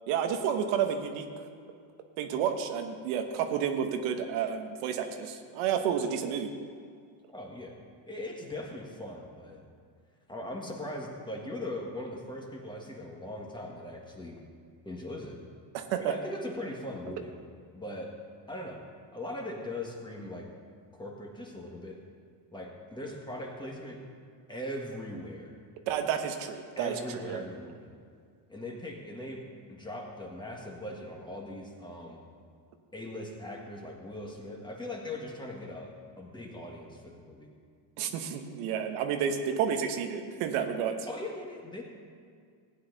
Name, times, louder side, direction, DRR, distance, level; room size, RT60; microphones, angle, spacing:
voice 1, 0.1-1.3 2.2-6.5 15.7-16.1 25.9-27.4 38.0-41.0, right 8 dB, 80° right, 6 dB, 1.2 m, -30 dB
voice 2, 7.3-7.8 8.1-9.6 10.3-14.4 14.8-15.4 16.0-17.3 17.7-18.1 18.5-18.9 19.1-20.5 20.9-22.0 22.5-24.0 24.5-25.5 26.8-27.9 28.5-32.2 32.9-37.5 41.1-41.8, left 1 dB, 10° left, 0 dB, 1.6 m, -40 dB
15.5 x 9.6 x 4.0 m, 2.2 s
cardioid pair, 130°, 49 cm